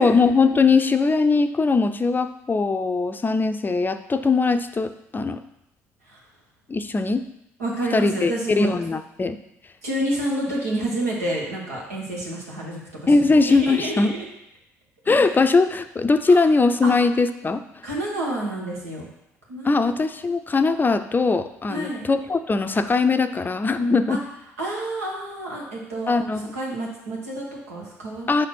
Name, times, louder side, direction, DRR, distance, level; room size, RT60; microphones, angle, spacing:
voice 1, 0.0-5.4 6.7-7.2 7.9-9.4 13.1-14.1 15.1-17.6 19.6-24.2 26.1-26.5 28.3-28.5, left 4 dB, 25° left, 9 dB, 0.5 m, -20 dB
voice 2, 7.6-8.7 9.8-14.2 16.3-16.4 16.8-16.9 17.8-19.1 19.5-19.9 21.7-22.0 24.1-24.2 24.6-28.3, right 1 dB, 90° right, -4 dB, 1.6 m, -29 dB
5.1 x 4.2 x 6.0 m, 0.82 s
hypercardioid pair, 55°, 8 cm